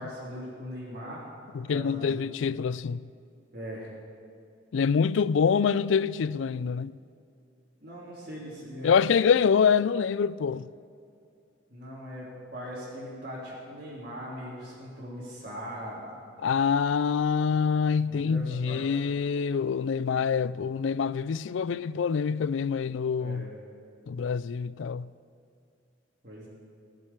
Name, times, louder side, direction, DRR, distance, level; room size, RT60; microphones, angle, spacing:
voice 1, 0.0-2.2 3.5-3.9 7.8-8.9 11.7-16.1 18.1-18.8 23.2-23.5 26.2-26.5, equal, 45° right, 3.5 m, -40 dB
voice 2, 1.5-3.1 4.7-7.0 8.8-10.7 16.4-23.5 24.1-25.1, left 6 dB, 80° left, 0.4 m, -25 dB
17.5 x 7.6 x 8.9 m
head